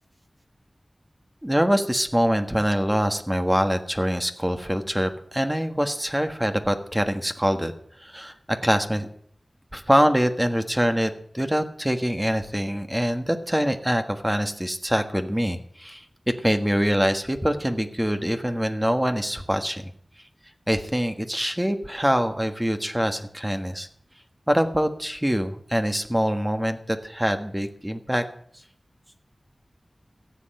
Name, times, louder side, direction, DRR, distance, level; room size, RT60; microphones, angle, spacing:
voice 1, 1.4-7.7 8.0-9.1 9.7-19.9 20.7-23.9 24.5-28.3, equal, 10° right, 6 dB, 1.4 m, -24 dB
14.5 x 7.9 x 7.7 m, 0.62 s
wide cardioid pair, 50°, 0 cm